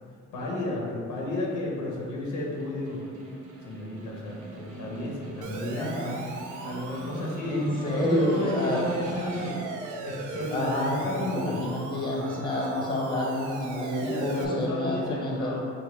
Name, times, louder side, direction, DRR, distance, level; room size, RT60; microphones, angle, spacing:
voice 1, 0.3-3.0 3.6-6.1 6.6-9.6 10.0-11.7 14.0-15.6, left 2 dB, 80° left, -3 dB, 1.0 m, -32 dB
Snare drum, 2.4-9.9, right 3 dB, 70° right, 1.1 m, -41 dB
Siren, 5.4-14.4, right 3 dB, 85° right, 0.5 m, -39 dB
voice 2, 5.8-6.2 7.5-8.8 10.5-15.5, left 1 dB, 15° left, -4 dB, 1.1 m, -29 dB
6.1 x 2.2 x 3.3 m, 2.2 s
cardioid pair, 90°, 30 cm